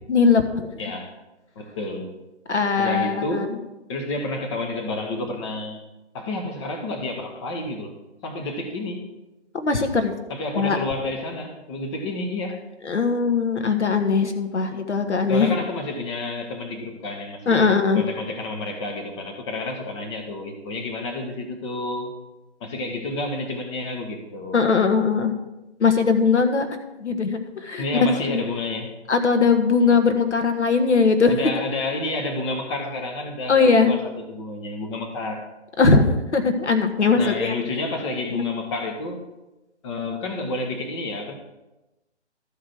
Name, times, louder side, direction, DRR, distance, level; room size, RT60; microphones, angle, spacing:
voice 1, 0.1-0.7 2.5-3.5 9.5-10.2 10.5-10.8 12.8-15.5 17.5-18.0 24.5-25.3 25.8-26.7 27.0-27.8 28.3-28.4 29.1-31.4 33.5-33.9 35.8-37.5 38.3-38.5, left 4 dB, 80° left, 6 dB, 1.5 m, -20 dB
voice 2, 0.8-1.1 1.6-2.1 2.8-3.6 3.9-5.8 6.1-7.9 8.2-9.1 10.3-12.6 15.3-22.1 22.6-24.6 27.8-28.9 31.3-35.4 37.1-39.3 39.8-41.3, left 2 dB, 25° left, 4 dB, 1.1 m, -30 dB
13.0 x 5.0 x 6.0 m, 1.0 s
figure-of-eight pair, 150°, 34 cm